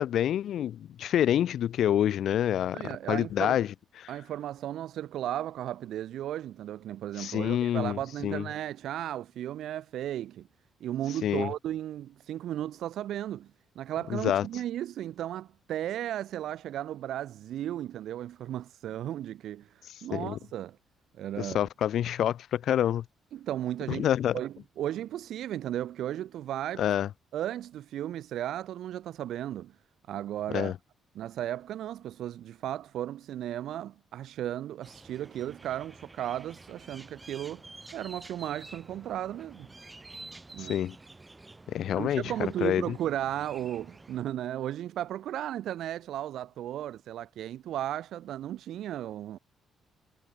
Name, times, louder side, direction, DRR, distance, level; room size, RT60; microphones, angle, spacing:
voice 1, 0.0-3.7 4.0-4.1 7.2-8.4 11.2-11.5 14.1-14.4 20.1-20.4 21.4-23.0 23.9-24.4 26.8-27.1 30.5-30.7 40.6-40.9 41.7-42.9, left 10 dB, 70° left, 1.0 m, -27 dB
voice 2, 2.7-3.6 4.1-10.5 10.8-13.5 13.8-19.7 20.0-20.8 21.2-21.7 23.3-24.1 24.3-26.8 27.3-29.7 30.1-30.7 31.1-37.6 37.9-39.7 40.5-40.8 41.9-49.4, right 12 dB, 75° right, 0.7 m, -35 dB
sound 1, 34.8-44.2, right 2 dB, 20° right, 3.9 m, -49 dB
cardioid pair, 90°, 0 cm